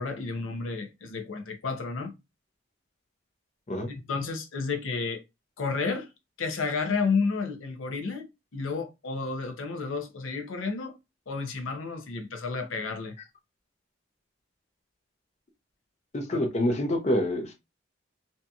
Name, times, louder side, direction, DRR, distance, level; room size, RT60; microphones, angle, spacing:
voice 1, 0.0-2.1 3.9-5.2 5.6-6.1 6.4-8.3 8.5-10.9 11.3-13.2 16.3-16.4, left 4 dB, 80° left, 0.6 m, -31 dB
voice 2, 16.1-17.5, left 1 dB, 35° left, 0.5 m, -26 dB
2.7 x 2.6 x 2.3 m
head